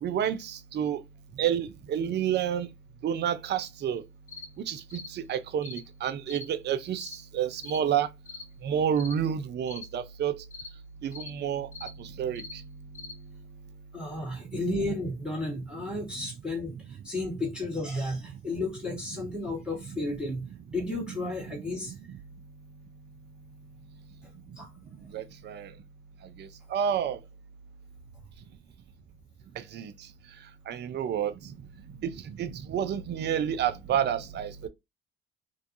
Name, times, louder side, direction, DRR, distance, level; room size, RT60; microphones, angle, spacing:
voice 1, 0.0-1.0 1.4-2.7 3.0-4.0 4.7-8.1 8.6-10.3 11.0-11.7 12.0-12.4 16.2-16.3 19.9-20.0 25.1-25.7 26.7-27.2 29.6-29.9 30.7-31.3 32.0-32.1 32.4-34.5, right 9 dB, 35° right, 0.4 m, -29 dB
sound 1, 4.3-4.5 4.9-5.1 5.6-5.8 6.3-6.5 7.0-7.2 7.6-7.8 8.3-8.5 9.0-9.2 9.7-9.9 10.5-10.7 11.1-11.3 11.7-11.9 12.4-12.6 12.9-13.2, left 4 dB, 25° left, 0.6 m, -43 dB
voice 2, 13.9-20.4 20.7-21.9 24.6-24.7, left 2 dB, 5° right, 1.1 m, -33 dB
2.4 x 2.2 x 2.5 m
hypercardioid pair, 55°, 32 cm